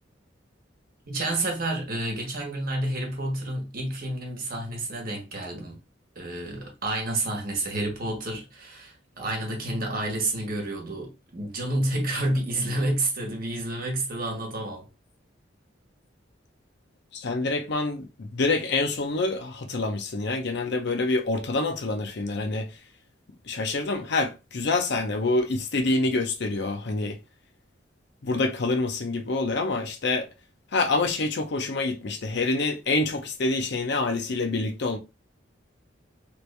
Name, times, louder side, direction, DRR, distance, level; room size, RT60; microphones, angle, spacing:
voice 1, 1.1-5.8 6.1-14.9, right 1 dB, 50° right, 1.2 m, -29 dB
voice 2, 17.1-22.7 23.5-27.2 28.2-30.3 30.7-35.0, left 3 dB, 65° left, 0.6 m, -26 dB
3.0 x 2.6 x 3.2 m
head